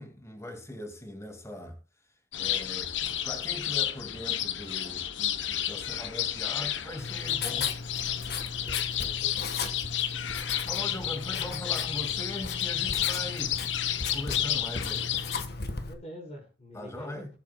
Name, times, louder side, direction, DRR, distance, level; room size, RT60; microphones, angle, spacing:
voice 1, 0.0-1.8 2.3-7.7 10.6-13.6 14.1-15.1 16.7-17.3, left 1 dB, 15° left, 2.1 m, -40 dB
sound 1, 2.3-15.4, left 11 dB, 75° left, 0.8 m, -31 dB
Writing, 7.0-15.9, left 4 dB, 55° left, 1.4 m, -37 dB
voice 2, 8.5-9.7 15.9-17.4, equal, 40° left, 4.2 m, -46 dB
20.0 x 7.2 x 2.3 m
head